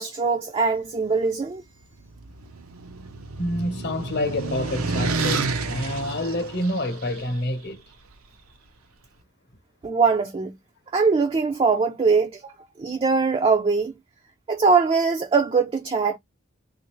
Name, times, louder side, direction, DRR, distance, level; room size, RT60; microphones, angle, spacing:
voice 1, 0.0-1.6 9.8-10.5 10.9-13.9 14.5-16.2, right 4 dB, 25° right, 0.4 m, -22 dB
sound 1, 2.0-7.2, right 4 dB, 90° right, 0.7 m, -30 dB
voice 2, 3.4-7.8, left 1 dB, 55° left, 0.9 m, -27 dB
3.2 x 2.5 x 3.0 m
head